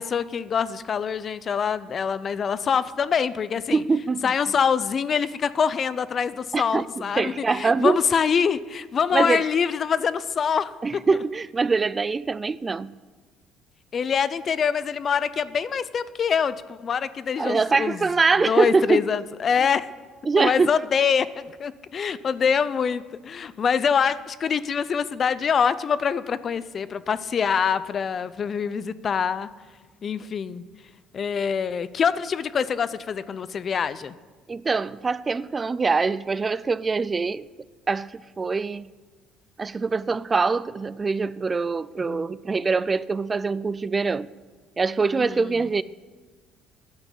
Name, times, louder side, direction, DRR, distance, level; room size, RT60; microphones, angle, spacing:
voice 1, 0.0-3.8 4.2-11.0 13.9-18.1 18.5-19.9 20.4-29.5 30.0-30.6 31.1-34.1 42.0-42.3 45.2-45.6, left 6 dB, 45° left, 0.5 m, -25 dB
voice 2, 3.7-4.3 6.5-6.8 7.2-8.0 9.1-9.4 10.8-12.9 17.4-19.0 20.3-20.7 34.5-37.5 37.9-38.9 39.6-44.3 44.8-45.8, right 4 dB, 30° right, 0.3 m, -23 dB
10.5 x 5.9 x 8.8 m
supercardioid pair, 75°, 0 cm